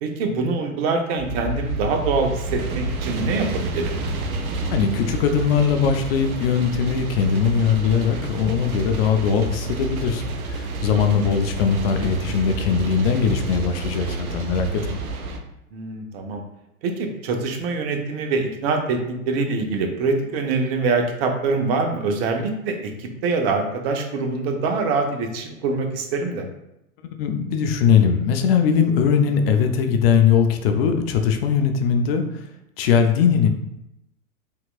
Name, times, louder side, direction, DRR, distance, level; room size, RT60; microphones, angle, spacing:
voice 1, 0.0-3.9 10.9-11.1 15.7-16.4 16.8-26.4, right 4 dB, 45° right, 4 dB, 0.7 m, -24 dB
sound 1, 1.2-15.4, right 3 dB, 85° right, 0.6 m, -29 dB
voice 2, 4.7-10.2 10.5-15.0 27.0-32.4 32.8-33.5, left 7 dB, 45° left, 6 dB, 0.5 m, -20 dB
3.6 x 2.9 x 2.3 m, 0.85 s
hypercardioid pair, 110°, 42 cm